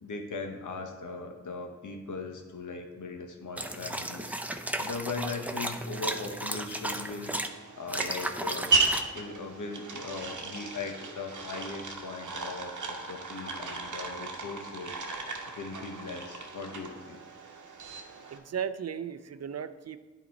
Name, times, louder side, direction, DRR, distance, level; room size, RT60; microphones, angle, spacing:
voice 1, 0.0-8.7 9.1-17.2, left 3 dB, 85° left, 4 dB, 0.9 m, -39 dB
sound 1, 3.6-7.5 7.9-9.0, right 1 dB, 5° right, 0.6 m, -35 dB
sound 2, 7.1-18.4, right 3 dB, 85° right, 0.9 m, -35 dB
voice 2, 18.3-20.0, right 8 dB, 60° right, 13 dB, 0.4 m, -35 dB
10.0 x 4.1 x 4.1 m, 1.3 s
cardioid pair, 45°, 30 cm